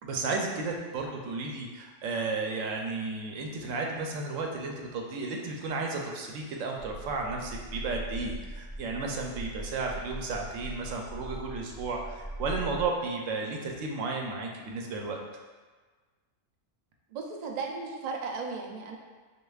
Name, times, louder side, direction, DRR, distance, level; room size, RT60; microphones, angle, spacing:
voice 1, 0.0-15.2, right 3 dB, 90° right, 1 dB, 1.0 m, -33 dB
sound 1, 6.8-12.8, right 1 dB, 25° left, 1.1 m, -40 dB
voice 2, 17.1-19.0, right 4 dB, 65° right, 1 dB, 0.4 m, -35 dB
6.4 x 2.4 x 2.3 m, 1.4 s
omnidirectional pair, 1.3 m